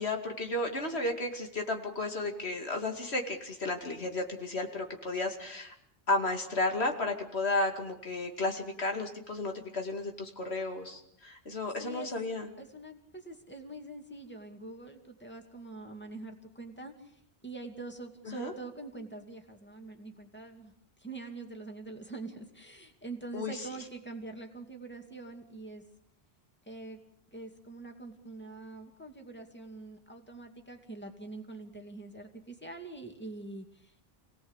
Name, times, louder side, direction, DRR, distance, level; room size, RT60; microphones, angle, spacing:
voice 1, 0.0-5.7 6.1-12.5 18.3-18.5 23.3-23.7, left 2 dB, 80° left, 4 dB, 2.8 m, -33 dB
voice 2, 11.8-12.1 12.6-25.8 26.7-27.0 27.3-34.1, right 3 dB, 10° left, 4 dB, 2.5 m, -44 dB
27.5 x 18.0 x 8.2 m, 0.70 s
omnidirectional pair, 1.1 m